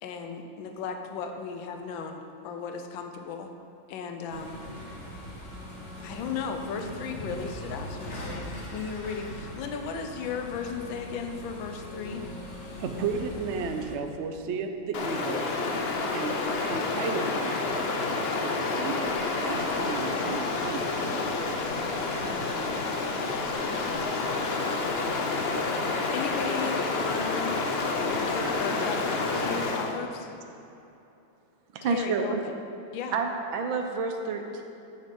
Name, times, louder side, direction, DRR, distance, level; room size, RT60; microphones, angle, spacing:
voice 1, 0.0-3.5 3.9-4.6 6.0-12.3 22.2-22.6 23.7-24.0 26.1-27.6 28.3-30.3 31.8-32.5 32.9-33.2, left 5 dB, 80° left, 5 dB, 1.5 m, -36 dB
sound 1, 4.3-14.0, equal, 40° left, 1.4 m, -40 dB
voice 2, 12.8-15.5 16.1-17.9 18.4-21.1, right 5 dB, 65° right, 5 dB, 0.7 m, -34 dB
Stream, 14.9-30.0, left 3 dB, 55° left, 0.6 m, -29 dB
voice 3, 31.8-32.4 33.1-34.6, right 4 dB, 85° right, 4 dB, 1.7 m, -29 dB
9.7 x 8.3 x 5.4 m, 2.8 s
omnidirectional pair, 2.1 m